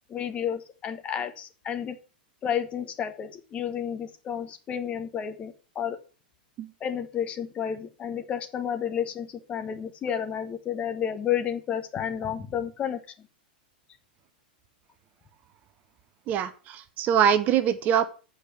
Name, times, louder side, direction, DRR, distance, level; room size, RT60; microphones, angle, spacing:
voice 1, 0.1-2.0 2.4-6.0 6.8-13.0, left 8 dB, 25° left, 8 dB, 1.1 m, -31 dB
voice 2, 16.3-18.1, right 9 dB, 30° right, 11 dB, 0.8 m, -23 dB
8.3 x 5.0 x 7.4 m, 0.36 s
figure-of-eight pair, 95°, 5 cm